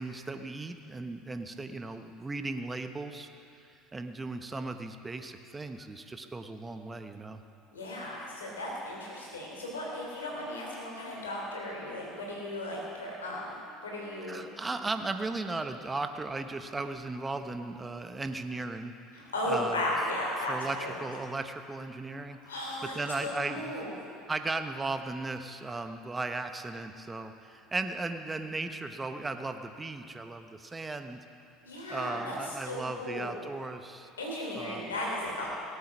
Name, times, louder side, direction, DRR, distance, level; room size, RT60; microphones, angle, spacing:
voice 1, 0.0-3.3 3.9-7.4 14.3-18.9 19.5-19.8 20.4-22.4 22.8-23.8 24.3-31.2 31.9-34.1 34.6-34.9, right 3 dB, 20° right, 7 dB, 1.1 m, -36 dB
voice 2, 7.7-14.5 19.1-20.9 22.4-23.9 31.6-33.4 34.2-35.5, left 1 dB, 85° left, -2 dB, 3.3 m, -35 dB
17.5 x 8.7 x 6.2 m, 2.7 s
hypercardioid pair, 70°, 0 cm